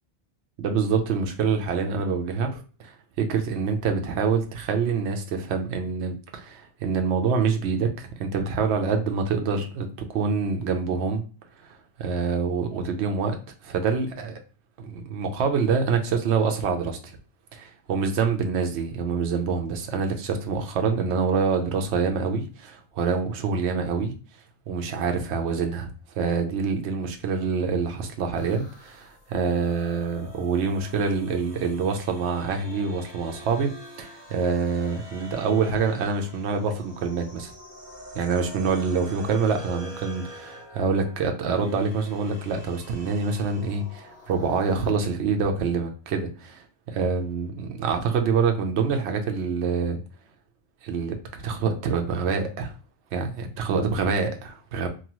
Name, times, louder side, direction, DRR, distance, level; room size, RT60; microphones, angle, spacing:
voice 1, 0.6-11.2 11.6-11.7 12.0-14.4 14.8-17.2 17.5-24.2 24.7-25.9 26.2-33.7 34.0-37.5 38.1-46.6 46.9-50.0 50.8-52.7 53.1-54.9, right 5 dB, 75° right, 0.9 m, -26 dB
sound 1, 28.4-44.9, left 1 dB, 20° right, 1.3 m, -45 dB
2.9 x 2.3 x 2.9 m
omnidirectional pair, 1.2 m